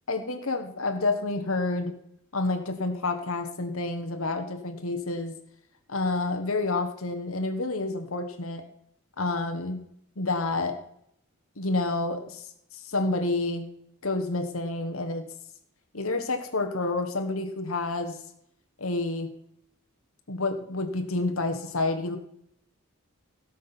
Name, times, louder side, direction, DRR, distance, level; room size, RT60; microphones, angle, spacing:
voice 1, 0.1-1.9 2.3-5.3 5.9-8.6 9.2-9.8 10.2-10.8 11.6-12.4 12.7-13.7 14.0-15.2 15.9-18.2 18.8-19.3 20.3-22.2, left 2 dB, 80° left, 5 dB, 1.5 m, -29 dB
17.0 x 6.4 x 6.0 m, 0.72 s
head